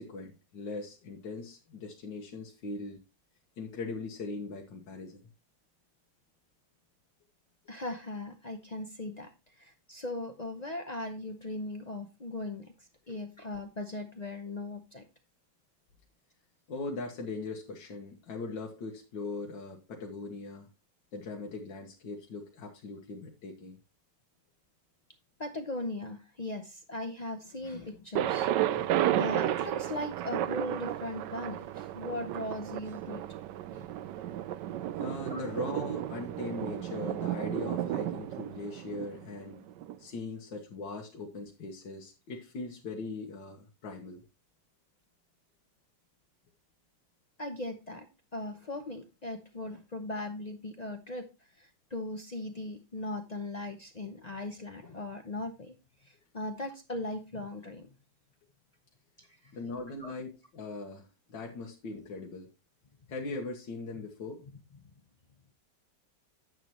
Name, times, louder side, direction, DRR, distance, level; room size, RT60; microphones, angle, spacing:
voice 1, 0.0-3.0 3.6-5.2 13.1-13.2 16.7-20.7 21.1-23.8 35.0-39.6 40.0-44.2 59.5-62.5 63.1-64.4, left 3 dB, 85° left, 0 dB, 2.0 m, -40 dB
voice 2, 7.7-15.0 25.4-33.2 33.7-33.9 35.3-35.4 47.4-51.3 51.6-55.7 56.0-57.9 59.2-59.5 60.0-60.1, left 1 dB, 55° left, 5 dB, 0.4 m, -39 dB
Thunder, 28.2-40.0, right 12 dB, 80° right, 1.2 m, -33 dB
10.0 x 7.1 x 3.0 m, 0.28 s
omnidirectional pair, 1.9 m